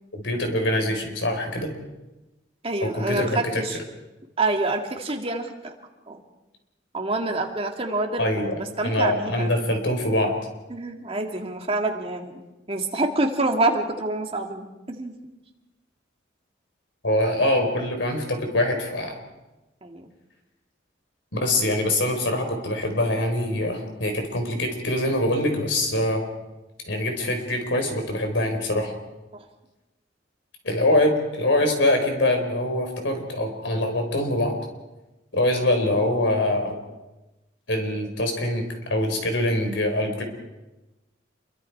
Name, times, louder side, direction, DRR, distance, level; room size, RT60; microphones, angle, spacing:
voice 1, 0.1-1.7 2.9-3.6 8.2-8.5 8.8-10.4 17.0-19.1 21.3-26.2 26.8-28.9 30.6-34.6 35.3-36.7 37.7-40.2, left 1 dB, 65° left, 5 dB, 4.4 m, -24 dB
voice 2, 2.6-3.8 4.4-5.7 6.1-6.2 6.9-8.3 8.6-9.5 10.7-12.4 12.7-15.2 19.8-20.1 29.3-29.4, right 2 dB, 30° right, 3 dB, 2.3 m, -27 dB
28.0 x 23.0 x 4.7 m, 1.1 s
head